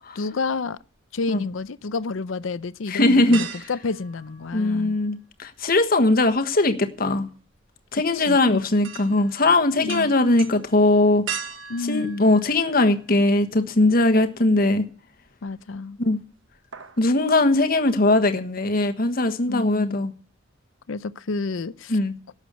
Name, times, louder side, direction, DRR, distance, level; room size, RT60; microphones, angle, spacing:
voice 1, 0.1-0.8 1.1-4.9 7.9-8.6 9.8-10.1 11.7-12.4 15.4-16.0 19.5-20.0 20.9-22.0 22.3-22.4, left 3 dB, 85° left, 0.6 m, -30 dB
sound 1, 0.8-1.7 2.1-2.2 3.3-5.0 5.3-13.2 13.6-13.7 15.2-15.8 16.1-16.3 16.5-17.1 17.4-17.5, right 7 dB, 80° right, 1.3 m, -39 dB
voice 2, 2.9-3.4 4.5-7.3 7.9-11.2 11.8-14.8 16.0-16.2 17.0-20.1 21.9-22.1, left 2 dB, 50° left, 1.4 m, -20 dB
12.5 x 8.1 x 8.5 m
head